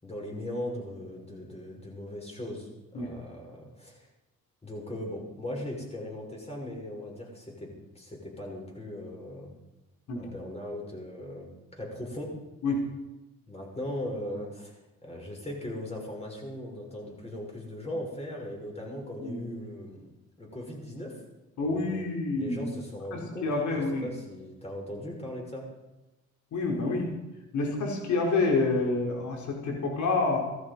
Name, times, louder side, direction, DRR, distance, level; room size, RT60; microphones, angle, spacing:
voice 1, 0.0-4.1 4.6-9.5 10.1-12.3 13.5-14.8 15.0-20.0 20.4-21.2 21.6-22.0 22.4-25.6, left 1 dB, 20° left, 0 dB, 6.5 m, -39 dB
voice 2, 21.6-22.7 23.1-24.1 26.5-27.1 27.5-30.4, left 3 dB, 70° left, 0 dB, 4.5 m, -28 dB
18.0 x 14.0 x 5.5 m, 1.0 s
cardioid pair, 90°, 30 cm